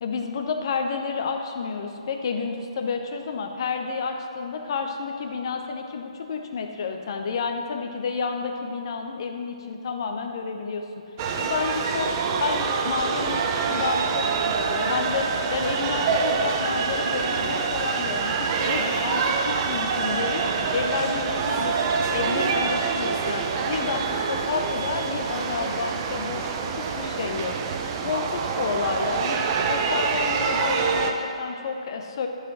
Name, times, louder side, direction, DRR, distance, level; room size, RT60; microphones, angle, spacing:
voice 1, 0.0-10.8 11.4-12.1 12.4-13.4 13.7-27.6 28.0-29.4 29.7-32.3, left 5 dB, 45° left, 4 dB, 1.0 m, -30 dB
sound 1, 11.2-31.1, right 5 dB, 30° right, 0.7 m, -26 dB
12.0 x 5.0 x 6.1 m, 2.6 s
figure-of-eight pair, 135°, 3 cm